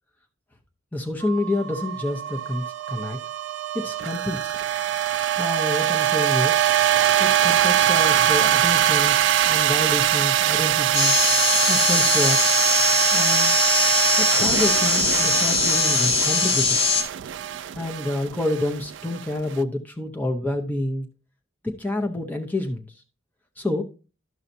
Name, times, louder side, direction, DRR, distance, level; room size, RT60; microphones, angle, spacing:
voice 1, 0.9-3.2 3.7-4.5 5.4-6.6 7.2-11.1 11.7-12.4 13.1-13.6 14.2-16.8 17.7-21.1 21.6-22.9 23.6-23.8, left 1 dB, 10° left, 2 dB, 0.7 m, -28 dB
sound 1, 1.2-19.5, right 11 dB, 60° right, 0.3 m, -23 dB
sound 2, 10.9-17.0, left 2 dB, 65° left, 2.0 m, -21 dB
12.5 x 5.6 x 2.7 m, 0.33 s
head